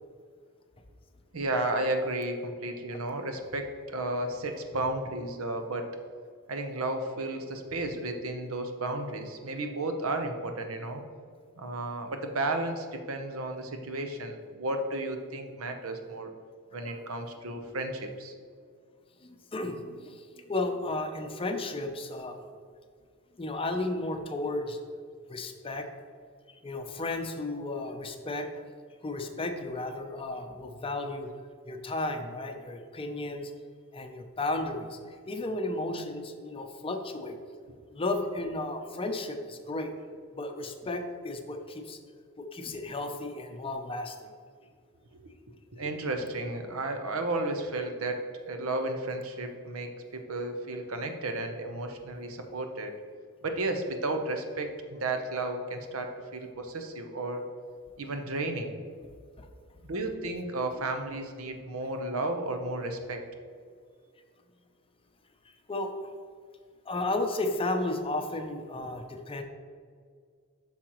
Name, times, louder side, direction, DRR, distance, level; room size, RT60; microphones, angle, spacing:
voice 1, 1.3-5.9 6.5-11.0 11.6-16.3 16.7-18.3 45.7-52.9 53.4-57.5 58.0-58.7 59.8-63.2, right 2 dB, 85° right, 5 dB, 0.8 m, -33 dB
voice 2, 19.2-22.4 23.4-24.8 25.3-25.9 26.6-28.5 29.0-31.3 31.6-33.5 33.9-37.4 37.9-39.9 40.3-42.0 42.4-44.3 59.4-59.5 65.7-65.9 66.9-69.4, left 2 dB, 25° left, 6 dB, 0.6 m, -33 dB
8.5 x 5.9 x 3.1 m, 2.1 s
head